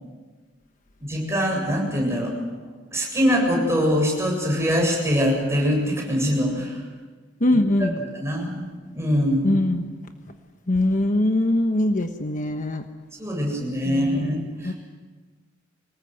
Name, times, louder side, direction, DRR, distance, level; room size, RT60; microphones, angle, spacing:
voice 1, 1.0-2.3 2.9-6.8 7.5-7.6 8.1-9.6 13.2-14.4 14.6-14.7, equal, 15° right, -1 dB, 7.7 m, -23 dB
voice 2, 7.4-8.0 9.4-9.9 10.7-12.8 13.8-14.7, left 1 dB, 45° left, 6 dB, 1.2 m, -22 dB
25.0 x 19.5 x 8.0 m, 1.4 s
head